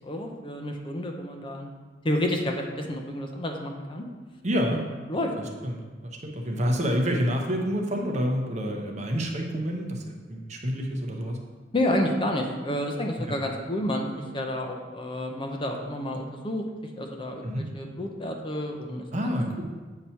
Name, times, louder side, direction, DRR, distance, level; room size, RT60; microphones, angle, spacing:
voice 1, 0.0-1.7 2.0-4.1 5.1-5.3 11.7-14.0 14.3-16.6 17.0-19.1, left 1 dB, 25° left, 2 dB, 0.5 m, -30 dB
voice 2, 4.4-4.8 5.6-11.4 13.3-13.4 17.4-17.7 19.1-19.6, equal, 40° right, 1 dB, 0.8 m, -28 dB
7.7 x 2.9 x 5.5 m, 1.3 s
head